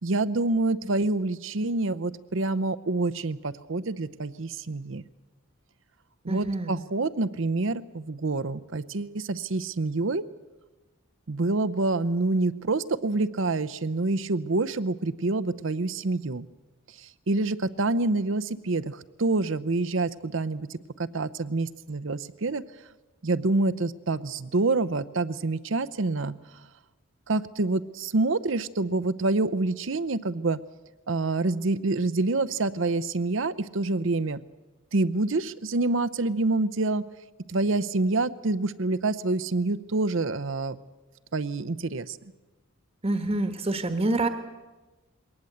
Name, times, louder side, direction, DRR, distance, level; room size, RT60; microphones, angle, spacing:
voice 1, 0.0-5.0 6.2-10.2 11.3-16.5 17.0-22.6 23.2-26.3 27.3-30.6 31.1-34.4 34.9-37.1 37.5-40.8 41.3-42.2, right 2 dB, 60° right, 15 dB, 0.7 m, -27 dB
voice 2, 6.3-6.8 43.0-44.3, right 2 dB, 25° right, 7 dB, 1.3 m, -27 dB
22.0 x 18.5 x 7.9 m, 1.2 s
head